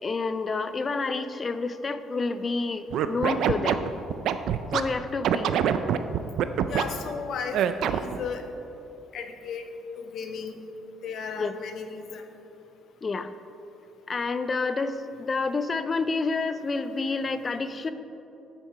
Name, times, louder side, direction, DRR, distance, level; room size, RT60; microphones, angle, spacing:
voice 1, 0.0-3.8 4.7-5.6 11.4-11.5 13.0-13.3 14.1-17.9, left 3 dB, 35° left, 11 dB, 0.5 m, -29 dB
Scratching (performance technique), 2.9-4.8 5.2-6.8 7.5-8.2, right 9 dB, 70° right, 0.4 m, -24 dB
voice 2, 6.7-8.4 9.1-9.6 9.9-10.6 11.0-12.2, left 6 dB, 65° left, 6 dB, 0.7 m, -35 dB
7.2 x 6.9 x 4.8 m, 3.0 s
supercardioid pair, 75°, 0 cm